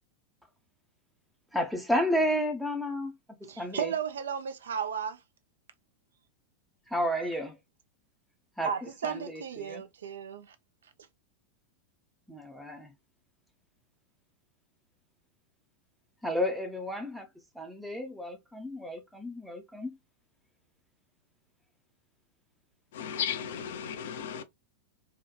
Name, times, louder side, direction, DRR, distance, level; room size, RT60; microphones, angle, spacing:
voice 1, 1.5-3.1 3.4-3.9 6.9-7.6 8.6-8.7 9.0-9.8 12.3-12.9 16.2-17.3 17.6-20.0, equal, ahead, 0.6 m, -32 dB
voice 2, 3.4-5.2 8.6-10.6, right 7 dB, 65° right, 0.4 m, -34 dB
voice 3, 22.9-24.4, left 8 dB, 55° left, 0.4 m, -34 dB
2.8 x 2.2 x 2.2 m
figure-of-eight pair, 90°, 0 cm